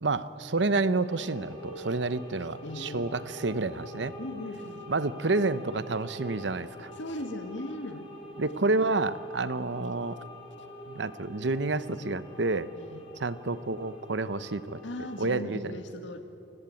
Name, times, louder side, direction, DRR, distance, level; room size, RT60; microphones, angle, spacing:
voice 1, 0.0-4.1 4.9-6.9 8.4-10.2 10.9-12.7 13.2-14.8 15.2-15.6, right 3 dB, 70° right, 15 dB, 0.9 m, -29 dB
sound 1, 1.0-15.3, left 1 dB, 25° left, 5.5 m, -46 dB
voice 2, 2.6-3.1 4.2-4.9 6.9-8.1 12.7-13.0 14.8-16.2, left 1 dB, 85° left, 7 dB, 2.1 m, -38 dB
29.5 x 17.0 x 8.6 m, 2.9 s
head